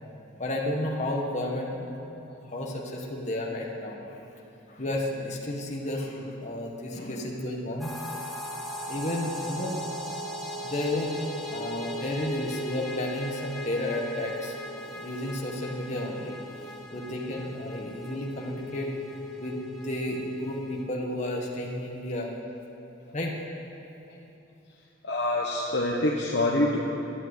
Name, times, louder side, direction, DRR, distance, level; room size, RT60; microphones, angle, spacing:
voice 1, 0.4-4.3 4.7-7.9 8.9-10.0 10.6-11.2 11.5-14.6 14.9-16.4 16.9-18.9 19.4-22.3 23.1-23.4, left 1 dB, 35° left, -2 dB, 1.3 m, -32 dB
sound 1, 7.8-20.8, equal, ahead, 1.3 m, -38 dB
voice 2, 25.0-26.8, left 1 dB, 60° left, -2 dB, 1.1 m, -25 dB
11.0 x 8.9 x 9.4 m, 2.9 s
head